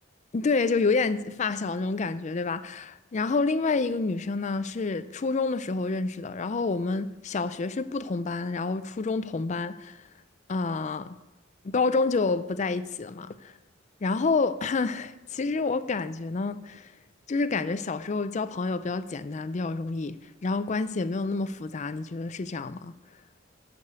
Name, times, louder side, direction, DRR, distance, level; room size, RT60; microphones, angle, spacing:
voice 1, 0.3-10.1 10.5-11.2 11.6-13.5 14.0-16.9 17.3-22.9, left 3 dB, 35° left, 0.4 m, -28 dB
11.0 x 5.2 x 6.8 m
head